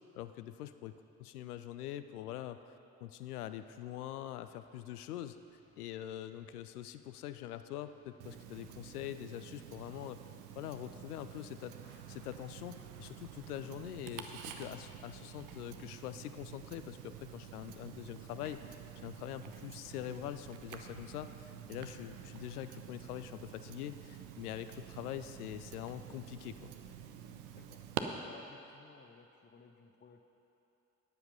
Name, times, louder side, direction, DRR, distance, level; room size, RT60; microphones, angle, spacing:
voice 1, 0.1-0.9 1.2-2.6 3.0-5.4 5.8-10.2 10.6-26.7, left 12 dB, 75° left, 12 dB, 0.6 m, -44 dB
sound 1, 3.4-15.3, left 4 dB, 40° left, 2.5 m, -70 dB
Tick-tock, 8.2-28.0, right 10 dB, 70° right, 0.9 m, -48 dB
sound 2, 11.9-27.2, right 5 dB, 45° right, 1.3 m, -63 dB
voice 2, 28.2-30.2, left 5 dB, 25° left, 6 dB, 0.9 m, -58 dB
13.5 x 10.0 x 5.5 m, 3.0 s
figure-of-eight pair, 45°, 45 cm